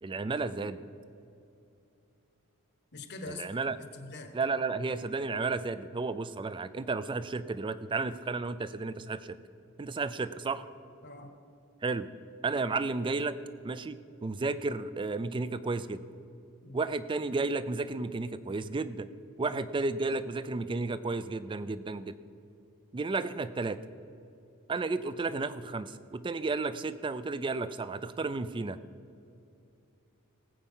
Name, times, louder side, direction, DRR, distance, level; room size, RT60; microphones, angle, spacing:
voice 1, 0.0-0.9 3.3-3.8 4.3-9.4 9.8-10.7 11.8-12.1 12.4-13.4 13.6-16.0 16.7-19.1 19.4-22.1 22.9-23.8 24.7-28.8, right 3 dB, 20° right, 15 dB, 0.4 m, -32 dB
voice 2, 2.9-4.3 11.0-11.3 16.6-16.9 19.4-19.6, left 3 dB, 50° left, 7 dB, 1.1 m, -44 dB
18.0 x 8.0 x 5.5 m, 2.6 s
head